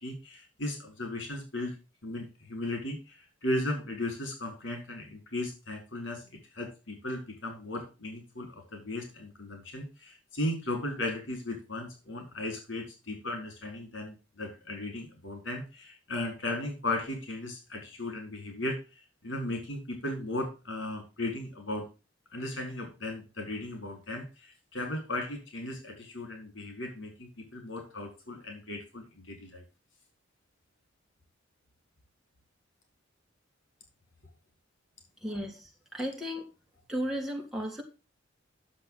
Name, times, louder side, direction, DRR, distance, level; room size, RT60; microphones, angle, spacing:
voice 1, 0.0-1.7 2.0-3.2 3.4-18.8 19.2-21.9 22.3-29.6, left 1 dB, 80° left, 3 dB, 4.6 m, -36 dB
voice 2, 35.2-36.5 36.9-37.8, equal, ahead, -1 dB, 2.9 m, -35 dB
10.0 x 7.4 x 3.9 m, 0.30 s
head